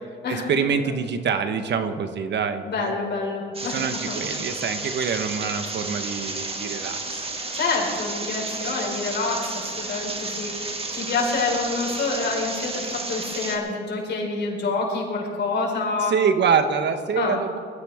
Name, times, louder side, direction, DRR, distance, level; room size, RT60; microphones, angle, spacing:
voice 1, 0.3-2.9 3.7-7.0 16.0-17.6, right 6 dB, 60° right, 8 dB, 1.3 m, -25 dB
voice 2, 2.6-4.2 7.5-16.1 17.1-17.4, left 3 dB, 60° left, -1 dB, 4.9 m, -27 dB
sound 1, 3.5-13.6, right 2 dB, 30° right, 2.2 m, -32 dB
21.0 x 15.0 x 3.6 m, 2.3 s
cardioid pair, 90°, 20 cm